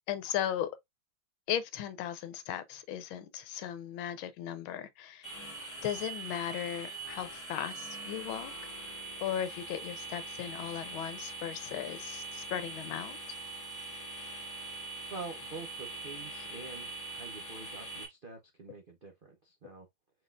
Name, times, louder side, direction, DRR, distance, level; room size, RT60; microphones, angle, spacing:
voice 1, 0.1-0.7 1.5-5.3 5.8-8.5 9.2-13.2, left 10 dB, 80° left, 1.5 m, -37 dB
sound 1, 5.2-18.0, right 3 dB, 10° left, 1.5 m, -43 dB
voice 2, 15.1-19.9, right 4 dB, 65° right, 0.5 m, -46 dB
4.8 x 4.1 x 2.4 m
omnidirectional pair, 2.3 m